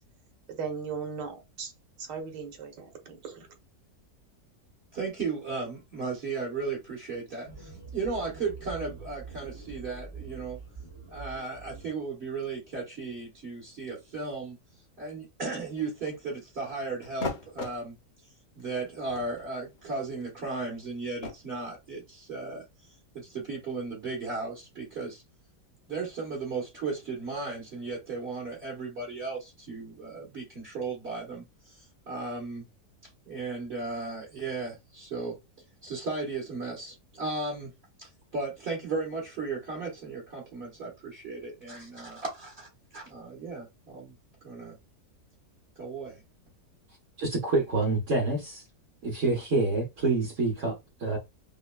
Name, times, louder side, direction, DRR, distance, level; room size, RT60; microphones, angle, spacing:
voice 1, 0.5-1.7 2.0-3.5, right 5 dB, 80° right, 1.6 m, -37 dB
voice 2, 4.9-10.6 11.1-14.6 15.0-17.9 18.5-22.6 23.1-25.2 25.9-31.8 32.1-32.6 33.3-35.4 35.8-37.7 38.0-44.1 44.4-44.8 45.8-46.2, right 4 dB, 40° right, 1.5 m, -35 dB
sound 1, 7.4-11.9, right 4 dB, 15° left, 1.0 m, -44 dB
sound 2, 15.8-16.4 17.0-17.8 18.6-18.7 19.0-21.3, left 4 dB, 85° left, 0.4 m, -39 dB
voice 3, 47.2-48.6 49.0-51.2, right 3 dB, 55° right, 1.1 m, -27 dB
5.2 x 2.1 x 2.2 m
omnidirectional pair, 1.9 m